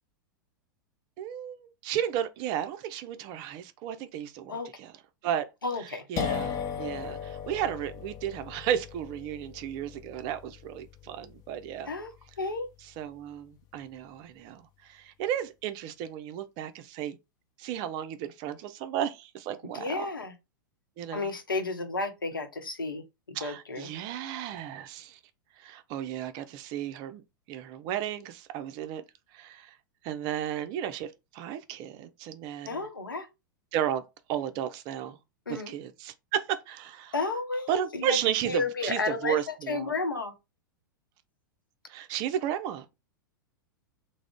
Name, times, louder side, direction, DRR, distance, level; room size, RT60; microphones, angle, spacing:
voice 1, 1.2-4.9 5.2-5.5 6.1-11.9 13.0-17.2 17.6-20.1 21.0-21.3 23.3-25.2 25.6-27.2 27.5-29.0 29.3-29.7 30.0-32.8 33.7-34.0 34.3-35.2 35.5-37.1 37.7-39.9 41.9-42.9, right 10 dB, 40° right, 0.4 m, -33 dB
voice 2, 5.6-6.1 11.9-12.7 19.7-20.3 21.1-23.9 32.6-33.3 35.5-35.7 37.1-38.2 38.4-40.3, left 3 dB, 80° left, 0.7 m, -32 dB
sound 1, 6.2-13.7, left 7 dB, 30° left, 0.5 m, -38 dB
2.4 x 2.0 x 3.4 m
figure-of-eight pair, 95°, 11 cm